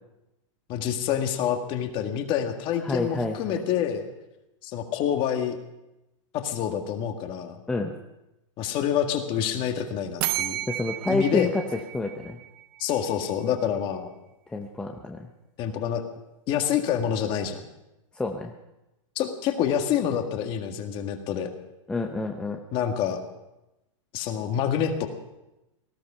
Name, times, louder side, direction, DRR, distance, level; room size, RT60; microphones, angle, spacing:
voice 1, 0.7-4.1 4.6-5.6 6.3-7.6 8.6-10.6 11.1-11.5 12.8-14.1 15.6-16.0 16.5-17.6 19.2-21.5 22.7-23.2 24.1-25.1, left 9 dB, 30° left, 5 dB, 1.8 m, -27 dB
voice 2, 2.8-3.6 7.7-7.9 10.7-11.6 11.9-12.4 14.5-15.3 18.2-18.5 21.9-22.6, left 2 dB, 5° left, 2 dB, 0.7 m, -28 dB
sound 1, 10.2-13.0, right 14 dB, 45° right, 0.7 m, -32 dB
18.5 x 13.5 x 5.7 m, 0.96 s
supercardioid pair, 155°, 17 cm